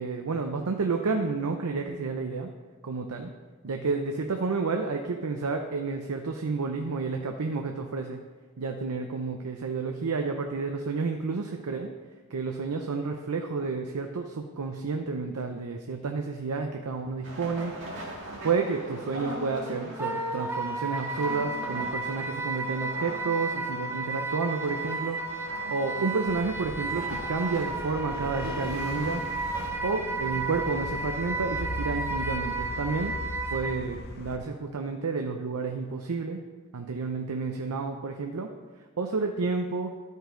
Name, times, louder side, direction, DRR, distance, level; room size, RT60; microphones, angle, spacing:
voice 1, 0.0-2.5 2.8-3.3 3.6-8.2 8.6-11.9 12.3-17.7 18.4-25.4 25.7-29.2 29.8-33.2 33.5-36.4 36.7-38.5 39.0-39.9, right 4 dB, 80° right, 4 dB, 0.6 m, -30 dB
sound 1, 17.2-29.7, equal, 55° right, 1.8 m, -41 dB
Wind instrument woodwind instrument, 20.0-33.8, right 3 dB, 10° right, 0.6 m, -33 dB
sound 2, 26.3-34.4, left 2 dB, 45° left, 0.6 m, -40 dB
12.0 x 5.4 x 3.8 m, 1.4 s
head